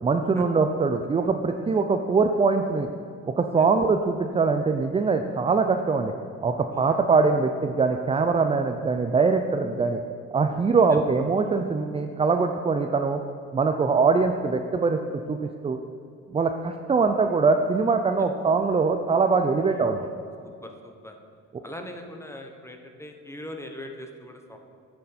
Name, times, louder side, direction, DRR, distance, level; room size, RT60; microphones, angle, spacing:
voice 1, 0.0-2.9 3.3-6.1 6.4-10.0 10.3-13.2 13.5-15.0 15.3-15.8 16.3-20.1, right 4 dB, 20° right, 6 dB, 0.4 m, -22 dB
voice 2, 19.6-20.1 20.4-21.2 21.6-24.6, left 1 dB, 10° left, 4 dB, 1.0 m, -41 dB
9.2 x 6.6 x 4.2 m, 2.4 s
cardioid pair, 90°, 30 cm